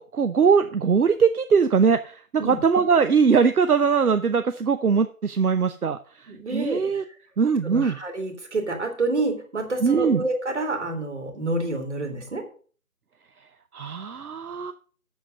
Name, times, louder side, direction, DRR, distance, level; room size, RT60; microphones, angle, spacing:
voice 1, 0.0-7.0 7.4-8.0 9.8-10.2 13.7-14.7, right 6 dB, 75° right, 9 dB, 0.9 m, -21 dB
voice 2, 6.3-7.0 7.6-12.5, right 2 dB, 50° right, 5 dB, 2.7 m, -28 dB
8.0 x 7.4 x 6.3 m, 0.42 s
figure-of-eight pair, 170°, 45 cm